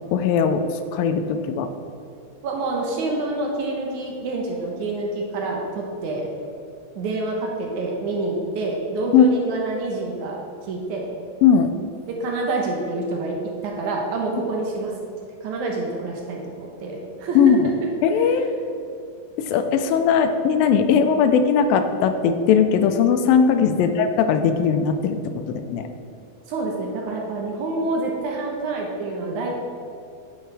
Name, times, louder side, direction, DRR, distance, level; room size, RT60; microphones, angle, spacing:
voice 1, 0.1-0.6 0.9-1.7 9.1-9.3 11.4-11.7 17.4-17.7 18.0-18.6 19.4-25.9, left 7 dB, 85° left, 8 dB, 2.3 m, -19 dB
voice 2, 2.4-6.3 7.0-11.1 12.1-14.9 15.4-17.5 23.6-23.8 26.5-29.5, right 2 dB, 70° right, -1 dB, 2.1 m, -27 dB
9.2 x 7.4 x 3.4 m, 2.6 s
omnidirectional pair, 4.1 m